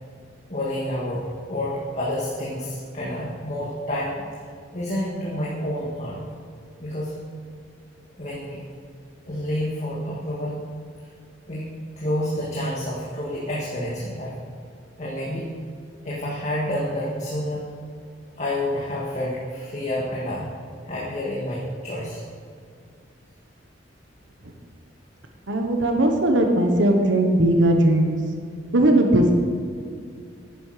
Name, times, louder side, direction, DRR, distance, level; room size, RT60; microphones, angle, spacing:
voice 1, 0.5-4.3 4.7-6.2 6.8-7.2 8.2-8.7 9.2-10.7 11.5-14.4 15.0-15.5 16.0-17.7 18.4-20.5 20.9-22.2, left 1 dB, 40° left, -6 dB, 1.9 m, -29 dB
voice 2, 25.5-28.2 28.7-29.3, right 1 dB, 80° right, 3 dB, 1.2 m, -18 dB
11.0 x 10.5 x 5.0 m, 2.3 s
head